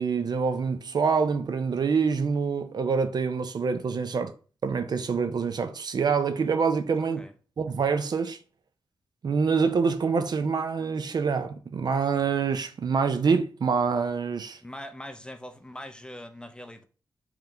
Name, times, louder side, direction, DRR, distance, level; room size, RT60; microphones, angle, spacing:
voice 1, 0.0-4.3 4.6-7.3 7.6-8.4 9.2-14.6, right 5 dB, 55° right, 0.4 m, -26 dB
voice 2, 14.6-16.8, left 1 dB, 10° left, 0.4 m, -42 dB
3.8 x 3.0 x 3.3 m
wide cardioid pair, 110°, 8 cm